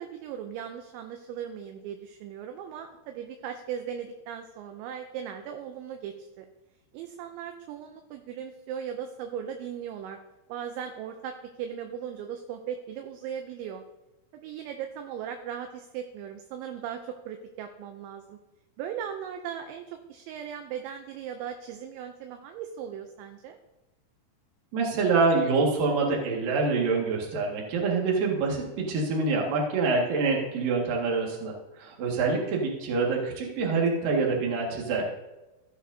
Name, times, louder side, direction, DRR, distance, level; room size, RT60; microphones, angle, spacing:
voice 1, 0.0-6.5 6.9-10.2 10.5-13.8 14.3-18.4 18.8-23.6, right 8 dB, 80° right, 6 dB, 2.8 m, -38 dB
voice 2, 24.7-35.1, right 4 dB, 55° right, -1 dB, 2.9 m, -26 dB
14.5 x 9.1 x 2.7 m, 1.0 s
omnidirectional pair, 5.6 m